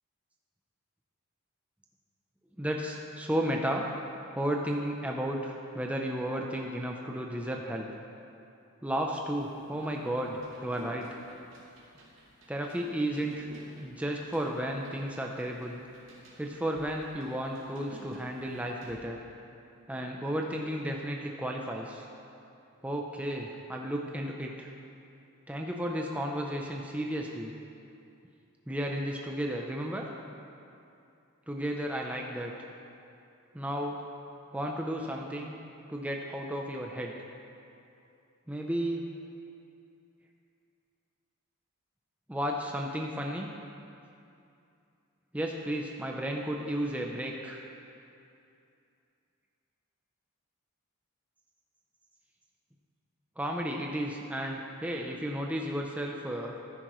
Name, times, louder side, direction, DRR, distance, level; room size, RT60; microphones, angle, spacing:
voice 1, 2.6-3.8 4.3-7.9 8.8-11.1 12.5-13.5 13.8-15.8 16.4-19.2 19.9-22.0 22.8-24.7 25.5-27.5 28.7-30.1 31.5-32.5 33.5-34.0 34.5-35.5 35.9-37.1 38.5-39.1 42.3-43.5 45.3-47.6 53.4-56.5, equal, 5° right, 0 dB, 0.6 m, -33 dB
sound 1, 9.2-19.0, equal, 65° right, 2.6 m, -53 dB
14.5 x 10.0 x 3.1 m, 2.6 s
head